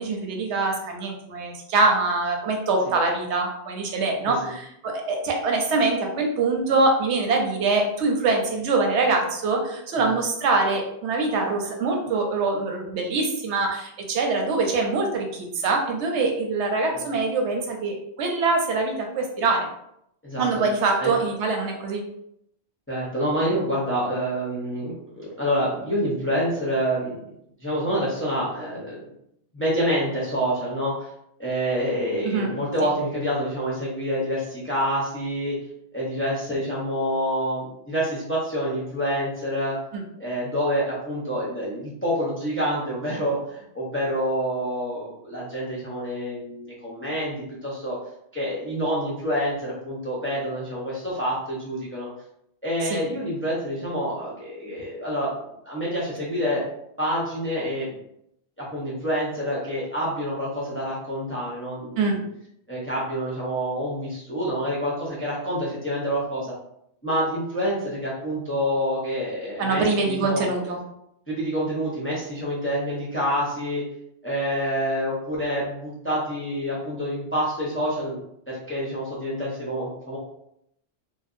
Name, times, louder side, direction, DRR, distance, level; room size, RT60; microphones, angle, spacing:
voice 1, 0.0-19.7 20.4-22.0 32.2-32.5 39.9-40.0 52.8-53.0 62.0-62.2 69.6-70.8, right 3 dB, 85° right, 2 dB, 0.9 m, -24 dB
voice 2, 22.9-27.2 27.6-29.0 29.5-31.1 31.4-35.6 35.9-39.8 40.2-48.0 48.3-52.1 52.6-55.3 55.6-56.6 57.0-57.9 58.6-62.2 62.7-66.5 67.0-70.4 71.3-73.8 74.2-78.2 78.5-80.2, equal, 15° left, -6 dB, 0.5 m, -27 dB
2.6 x 2.1 x 2.5 m, 0.75 s
omnidirectional pair, 1.1 m